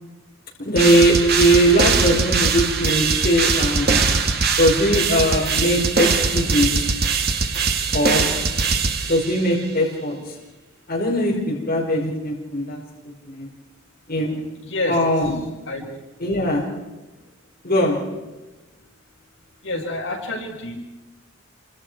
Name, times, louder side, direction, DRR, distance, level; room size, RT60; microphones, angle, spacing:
voice 1, 0.6-4.0 4.6-6.7 7.9-8.3 9.1-10.1 10.9-12.8 13.3-13.5 14.1-14.4 14.9-15.3 16.2-16.7 17.6-18.2, equal, 50° left, -3 dB, 5.1 m, -20 dB
sound 1, 0.8-9.6, right 4 dB, 50° right, 2.1 m, -21 dB
voice 2, 14.6-15.0 15.7-15.8 19.6-20.8, left 2 dB, 70° left, 0 dB, 5.7 m, -28 dB
28.5 x 25.5 x 4.8 m, 1.1 s
head